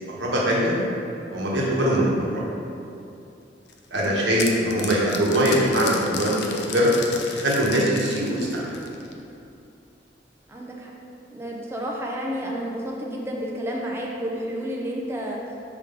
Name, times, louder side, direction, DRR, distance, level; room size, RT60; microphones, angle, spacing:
voice 1, 0.1-0.8 1.3-2.4 3.9-6.9 7.3-8.7, equal, 80° right, -4 dB, 1.2 m, -22 dB
sound 1, 3.7-9.2, left 6 dB, 65° left, 0.6 m, -34 dB
voice 2, 10.5-10.9 11.3-15.4, equal, 15° right, -2 dB, 0.5 m, -31 dB
5.3 x 3.7 x 5.2 m, 2.6 s
head